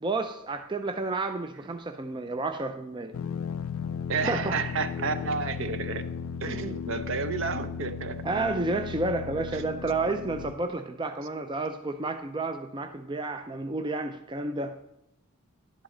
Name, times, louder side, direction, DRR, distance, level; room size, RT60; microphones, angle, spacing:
voice 1, 0.0-3.1 4.3-4.6 8.2-14.8, right 3 dB, 20° right, 7 dB, 0.4 m, -31 dB
sound 1, 3.1-10.5, left 6 dB, 65° left, 0.4 m, -35 dB
voice 2, 4.1-6.0 6.4-8.2 9.5-9.6, right 4 dB, 60° right, 10 dB, 0.7 m, -31 dB
11.5 x 10.0 x 3.8 m, 0.81 s
head